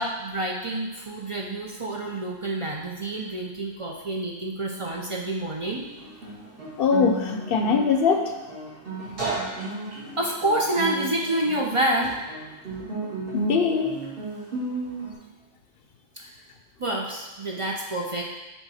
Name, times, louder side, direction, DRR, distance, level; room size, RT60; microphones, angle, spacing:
voice 1, 0.0-5.8 10.2-12.2 16.2-16.3 16.8-18.2, right 1 dB, 40° right, -1 dB, 0.6 m, -28 dB
Guitar, 5.7-15.1, right 3 dB, 65° right, 2.3 m, -34 dB
voice 2, 6.8-8.3 13.3-14.0, left 5 dB, 65° left, 5 dB, 0.8 m, -22 dB
7.0 x 3.5 x 4.1 m, 1.1 s
omnidirectional pair, 1.1 m